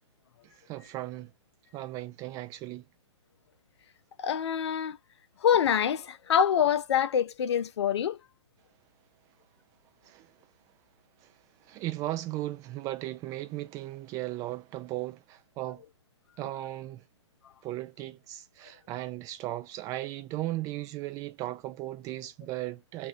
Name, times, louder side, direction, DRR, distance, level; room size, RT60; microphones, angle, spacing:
voice 1, 0.7-1.3 1.7-2.8 10.0-10.3 11.7-15.8 16.4-17.0 17.6-23.1, right 16 dB, 20° right, 0.5 m, -36 dB
voice 2, 4.2-5.0 5.4-8.2, left 8 dB, 65° left, 0.5 m, -25 dB
2.7 x 2.6 x 3.1 m
hypercardioid pair, 135°, 15 cm